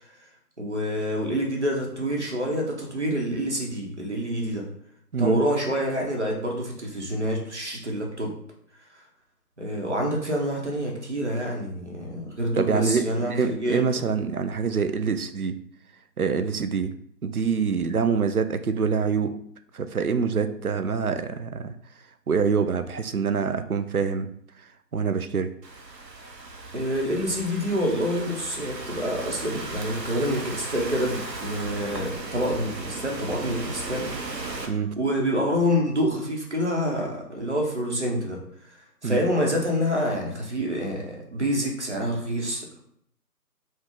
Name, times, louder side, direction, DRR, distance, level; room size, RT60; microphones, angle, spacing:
voice 1, 0.6-4.7 5.2-8.3 9.6-13.9 26.7-34.1 35.0-38.4 39.0-42.8, equal, 45° right, 0 dB, 1.0 m, -27 dB
voice 2, 12.6-15.6 16.2-16.9 17.2-19.4 19.7-21.7 22.3-24.3 24.9-25.5 34.7-34.9 39.0-39.2, right 5 dB, 65° right, 9 dB, 0.5 m, -25 dB
Thunderstorm / Rain, 25.6-34.7, right 3 dB, 80° right, 1.0 m, -36 dB
5.2 x 2.3 x 3.7 m, 0.67 s
figure-of-eight pair, 175°, 49 cm